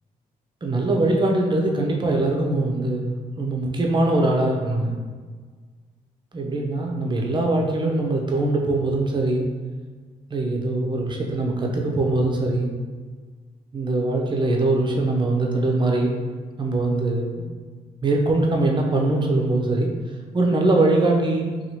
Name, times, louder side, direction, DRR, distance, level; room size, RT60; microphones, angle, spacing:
voice 1, 0.6-4.9 6.3-9.4 10.3-12.7 13.7-16.1 16.6-17.5 18.0-19.9 20.3-21.5, right 2 dB, 30° right, 0 dB, 0.6 m, -22 dB
2.8 x 2.3 x 2.8 m, 1.5 s
supercardioid pair, 55°, 16 cm